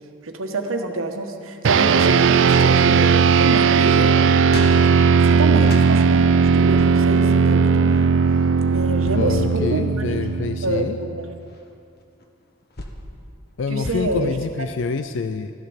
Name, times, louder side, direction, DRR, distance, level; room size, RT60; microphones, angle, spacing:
voice 1, 0.2-6.3 6.5-7.9 8.7-10.1 10.6-11.3 13.7-14.7, right 2 dB, 90° right, 4 dB, 1.4 m, -27 dB
sound 1, 1.6-11.3, right 5 dB, 65° right, 0.4 m, -17 dB
sound 2, 3.2-5.9 6.6-7.2 7.8-8.1 8.8-9.4 9.9-10.5 11.1-13.1 13.8-14.0, left 2 dB, 50° left, 1.3 m, -37 dB
voice 2, 9.1-11.0 13.6-15.5, left 4 dB, 65° left, 10 dB, 0.4 m, -26 dB
13.5 x 12.0 x 7.2 m, 2.6 s
head